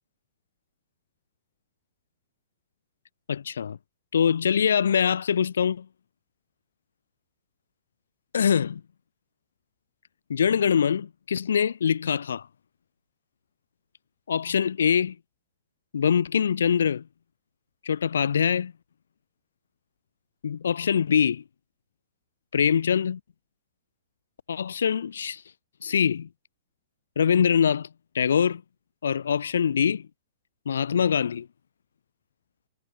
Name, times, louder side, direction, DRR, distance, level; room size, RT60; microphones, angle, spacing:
voice 1, 3.3-3.8 4.1-5.9 8.3-8.8 10.3-12.5 14.3-15.2 15.9-17.0 17.8-18.7 20.4-21.4 22.5-23.2 24.5-25.4 25.8-26.3 27.2-27.9 28.1-28.6 29.0-30.1 30.7-31.5, left 7 dB, 85° left, 3.5 m, -23 dB
hypercardioid pair, 145°, 0 cm